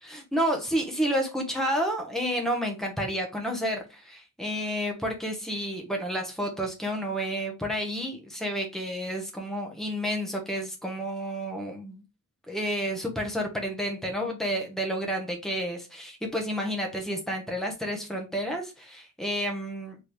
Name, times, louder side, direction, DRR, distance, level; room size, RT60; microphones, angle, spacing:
voice 1, 0.0-12.0 12.5-20.0, equal, ahead, 1 dB, 0.9 m, -30 dB
4.3 x 3.1 x 3.3 m, 0.27 s
head